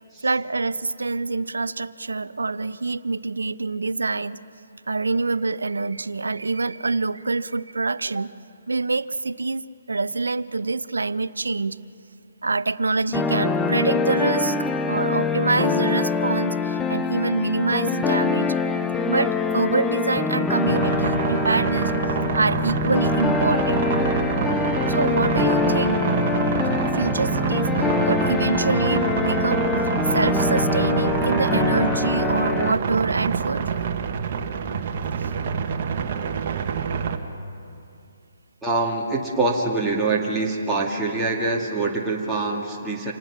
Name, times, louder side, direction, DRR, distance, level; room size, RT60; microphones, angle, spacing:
voice 1, 0.2-4.4 4.9-8.3 8.7-9.6 9.9-11.8 12.4-14.6 14.9-18.5 19.1-21.9 22.3-23.9 24.9-26.1 26.9-29.7 30.0-33.7 35.2-35.3, right 3 dB, 80° right, 17 dB, 0.6 m, -25 dB
sound 1, 13.1-32.7, left 4 dB, 10° left, 0.8 m, -24 dB
sound 2, 20.6-37.2, right 6 dB, 45° right, 1.4 m, -26 dB
voice 2, 38.6-43.1, right 3 dB, 5° right, -5 dB, 2.2 m, -24 dB
27.0 x 19.0 x 5.9 m, 2.7 s
figure-of-eight pair, 140°, 0 cm